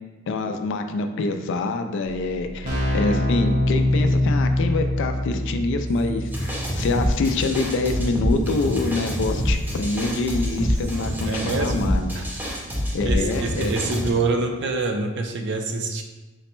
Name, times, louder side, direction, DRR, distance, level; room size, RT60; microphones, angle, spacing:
voice 1, 0.3-12.1 12.9-13.7, left 3 dB, 60° left, 7 dB, 0.3 m, -25 dB
Keyboard (musical), 2.0-2.1 2.3-13.0, left 1 dB, 40° right, 0.9 m, -27 dB
sound 1, 5.9-8.0 8.3-11.9, right 2 dB, 75° right, 1.4 m, -48 dB
sound 2, 6.3-14.1, equal, 10° right, 0.6 m, -26 dB
voice 2, 11.3-11.8 12.1-12.2 13.0-16.0, right 3 dB, 55° right, 4 dB, 0.5 m, -26 dB
4.0 x 2.1 x 4.3 m, 1.2 s
head